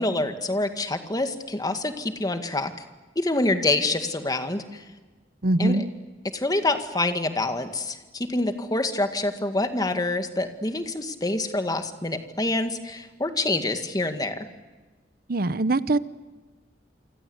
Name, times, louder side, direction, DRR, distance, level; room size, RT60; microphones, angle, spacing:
voice 1, 0.0-2.7 3.2-4.8 5.6-5.8 6.3-14.5, left 2 dB, 20° left, 8 dB, 2.0 m, -26 dB
voice 2, 5.4-5.9 15.3-16.0, right 2 dB, 55° right, 15 dB, 0.9 m, -22 dB
28.5 x 25.0 x 8.0 m, 1.3 s
head